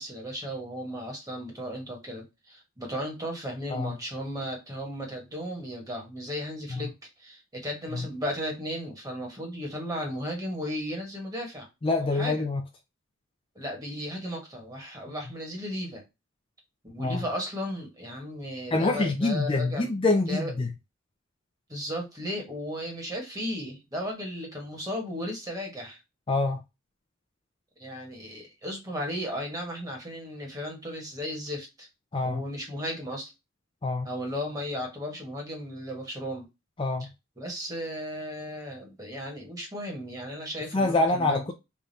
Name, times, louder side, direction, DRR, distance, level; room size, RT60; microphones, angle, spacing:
voice 1, 0.0-6.9 7.2-11.7 12.0-12.4 13.5-16.0 16.8-19.9 20.3-20.5 21.7-26.0 27.8-31.9 32.2-33.3 34.0-36.5 37.4-41.5, equal, 15° right, 1.4 m, -35 dB
voice 2, 11.8-12.6 17.0-17.2 18.7-20.7 26.3-26.6 32.1-32.4 33.8-34.1 36.8-37.1 40.7-41.5, left 2 dB, 25° left, 0.4 m, -26 dB
3.5 x 2.6 x 4.0 m
head